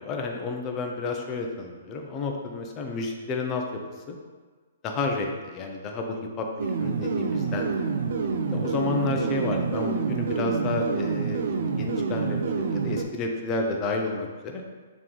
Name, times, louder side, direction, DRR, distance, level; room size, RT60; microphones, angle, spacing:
voice 1, 0.0-3.8 4.1-4.2 4.8-7.7 8.2-14.6, left 3 dB, 25° left, 2 dB, 0.6 m, -31 dB
sound 1, 6.6-13.0, right 5 dB, 60° right, 0.3 m, -27 dB
3.4 x 3.0 x 3.8 m, 1.4 s
figure-of-eight pair, 125°, 0 cm